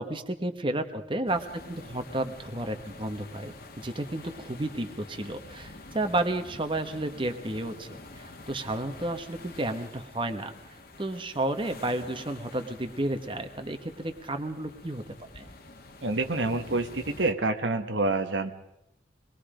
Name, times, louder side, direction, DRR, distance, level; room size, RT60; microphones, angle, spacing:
voice 1, 0.0-10.5 11.0-15.5, right 1 dB, 30° right, 6 dB, 1.4 m, -32 dB
sound 1, 1.3-17.3, left 2 dB, 55° left, 1.9 m, -47 dB
voice 2, 16.0-18.5, right 2 dB, 90° right, 6 dB, 1.4 m, -27 dB
24.5 x 21.0 x 5.1 m, 0.84 s
head